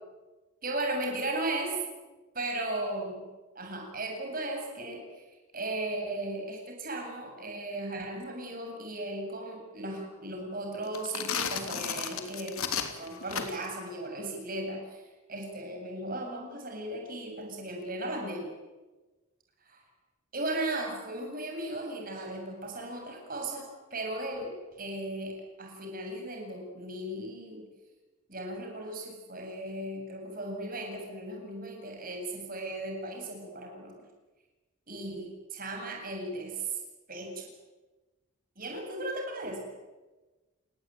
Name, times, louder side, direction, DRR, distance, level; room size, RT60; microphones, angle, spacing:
voice 1, 0.6-1.8 2.3-3.2 3.6-5.2 5.5-12.7 13.0-15.0 15.3-18.5 19.6-19.8 20.3-25.3 25.6-27.7 28.3-34.0 34.9-36.8 37.1-37.5 38.6-39.7, right 1 dB, 40° right, 2 dB, 8.0 m, -36 dB
sound 1, 10.9-13.8, left 7 dB, 75° left, 3.1 m, -34 dB
30.0 x 20.0 x 9.4 m, 1.2 s
head